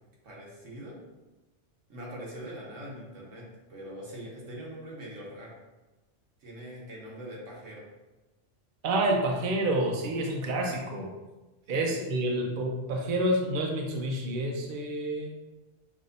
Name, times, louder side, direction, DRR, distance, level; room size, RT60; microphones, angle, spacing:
voice 1, 0.2-1.0 1.9-5.6 6.4-7.8 11.6-11.9, equal, 85° right, -4 dB, 1.4 m, -42 dB
voice 2, 8.8-11.1 11.7-15.3, right 1 dB, 50° right, 0 dB, 0.7 m, -28 dB
6.0 x 2.7 x 2.6 m, 1.1 s
omnidirectional pair, 1.3 m